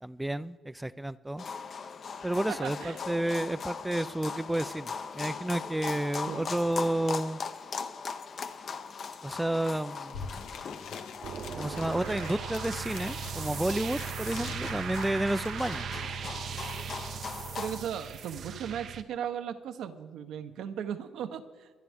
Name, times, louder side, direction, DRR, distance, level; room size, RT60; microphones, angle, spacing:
voice 1, 0.0-1.5 2.2-7.4 9.2-10.5 11.6-15.8, right 1 dB, 10° right, 15 dB, 0.4 m, -31 dB
sound 1, 1.4-17.8, left 5 dB, 50° left, 0.8 m, -40 dB
voice 2, 2.5-3.0 6.3-6.5 17.6-21.7, right 8 dB, 80° right, 8 dB, 0.9 m, -37 dB
sound 2, 9.7-9.8 10.0-15.8, left 6 dB, 90° left, 1.0 m, -45 dB
sound 3, 11.2-19.0, right 7 dB, 65° right, 0.6 m, -38 dB
24.5 x 10.5 x 3.6 m, 1.5 s
cardioid pair, 90°, 0 cm